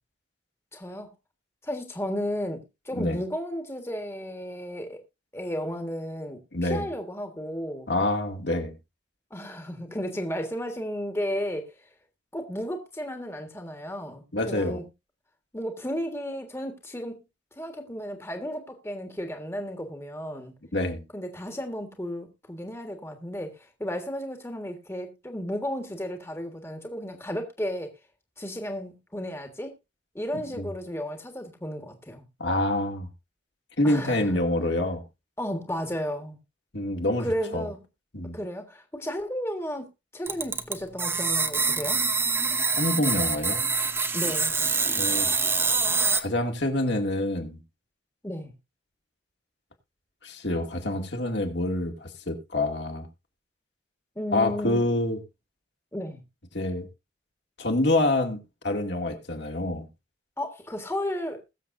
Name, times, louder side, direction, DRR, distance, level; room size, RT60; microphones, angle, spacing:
voice 1, 0.7-1.1 1.6-5.0 5.3-7.9 9.3-11.7 12.3-14.8 15.5-17.2 17.6-20.5 21.1-23.5 23.8-27.9 28.4-29.7 30.1-32.2 33.8-34.3 35.4-36.4 37.2-37.8 38.3-39.9 40.1-42.0 44.1-44.5 48.2-48.5 54.1-54.9 55.9-56.2 60.4-61.4, equal, 15° left, 1.6 m, -33 dB
voice 2, 6.5-6.9 7.9-8.7 14.3-14.8 20.7-21.0 30.3-30.7 32.4-33.1 33.8-35.0 36.7-37.7 38.1-38.4 42.8-43.7 45.0-45.3 46.2-47.6 50.2-53.1 54.3-55.2 56.5-56.9 57.6-58.4 58.6-59.9, left 1 dB, 60° left, 2.3 m, -27 dB
sound 1, 40.3-46.2, right 4 dB, 10° right, 0.8 m, -25 dB
21.0 x 7.2 x 2.6 m
head